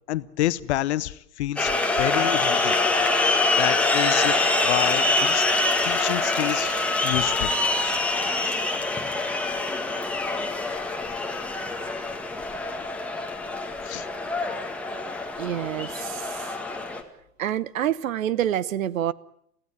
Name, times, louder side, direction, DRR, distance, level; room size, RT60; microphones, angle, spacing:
voice 1, 0.1-2.8 3.5-5.5 5.8-7.5 13.8-14.1, left 15 dB, 45° left, 0.9 m, -28 dB
sound 1, 1.6-17.0, left 2 dB, 5° left, 1.9 m, -25 dB
voice 2, 15.4-16.6 17.4-19.1, right 11 dB, 60° right, 1.0 m, -27 dB
24.0 x 16.0 x 9.0 m
figure-of-eight pair, 115°, 45 cm